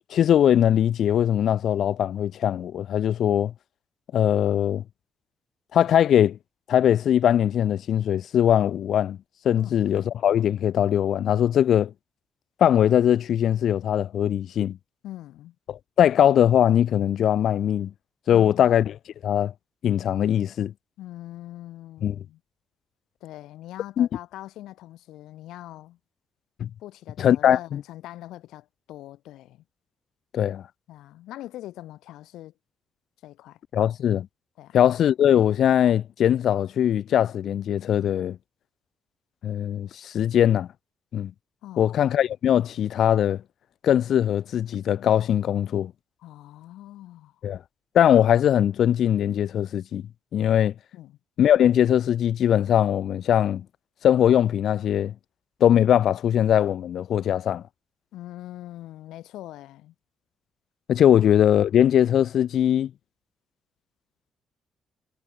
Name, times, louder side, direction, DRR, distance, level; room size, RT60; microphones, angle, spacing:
voice 1, 0.1-3.5 4.1-4.8 5.7-6.4 6.7-9.2 9.4-11.9 12.6-14.8 15.7-17.9 18.3-18.9 19.2-19.5 19.8-20.7 22.0-22.1 24.0-24.1 26.6-26.7 27.2-27.8 30.3-30.6 33.7-34.3 34.7-38.4 39.4-40.7 41.1-41.3 41.8-43.4 43.8-45.9 47.4-47.6 47.9-50.0 50.3-50.7 51.4-53.6 54.0-55.1 55.6-57.6 60.9-62.9, left 10 dB, 70° left, 0.7 m, -21 dB
voice 2, 15.0-15.6 18.3-18.7 21.0-22.4 23.2-26.0 26.8-29.6 30.9-32.5 33.2-33.6 34.6-34.8 41.6-41.9 46.2-47.4 50.9-51.2 58.1-59.9, left 14 dB, 90° left, 2.4 m, -42 dB
cardioid pair, 90°, 0 cm